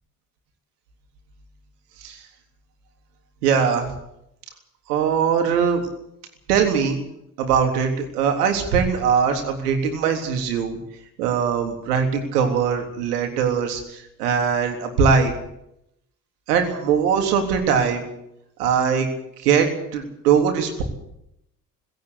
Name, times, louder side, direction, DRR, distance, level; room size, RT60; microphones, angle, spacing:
voice 1, 3.4-3.9 4.9-5.8 6.5-7.0 7.4-10.8 11.2-15.3 16.5-18.0 18.6-19.1 19.4-20.8, right 6 dB, 70° right, 4 dB, 3.5 m, -21 dB
18.5 x 17.0 x 8.2 m, 0.79 s
figure-of-eight pair, 55°, 49 cm